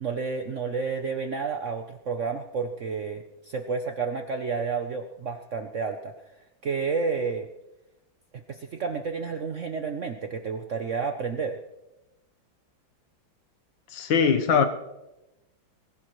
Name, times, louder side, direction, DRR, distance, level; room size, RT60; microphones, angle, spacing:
voice 1, 0.0-6.1 6.6-7.5 8.5-11.6, right 5 dB, 60° right, 0.8 m, -30 dB
voice 2, 13.9-14.7, left 6 dB, 70° left, 1.8 m, -21 dB
22.0 x 15.5 x 3.1 m
omnidirectional pair, 2.2 m